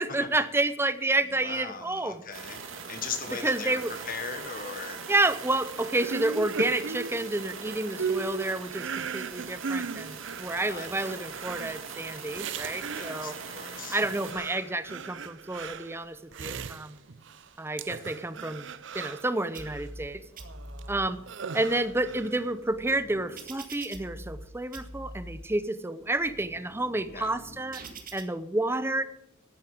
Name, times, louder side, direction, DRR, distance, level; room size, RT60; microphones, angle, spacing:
voice 1, 0.0-2.2 3.4-3.9 5.1-13.3 13.9-17.0 17.6-18.7 18.9-20.2 20.9-21.2 21.5-27.8 28.1-29.0, right 2 dB, 10° right, 13 dB, 0.6 m, -29 dB
voice 2, 1.3-2.6 2.9-5.0 10.7-11.1 12.9-14.0 26.9-27.3, left 5 dB, 45° left, 6 dB, 1.4 m, -39 dB
sound 1, 2.3-14.3, right 5 dB, 80° right, 2.1 m, -41 dB
sound 2, 6.0-13.5 14.0-17.5 17.8-19.8 20.4-22.5, right 5 dB, 60° right, 0.6 m, -38 dB
sound 3, 19.5-20.1 20.4-21.1 21.7-24.5 24.7-25.4 26.0-28.2, right 1 dB, 45° right, 1.9 m, -45 dB
11.5 x 8.9 x 7.5 m, 0.80 s
head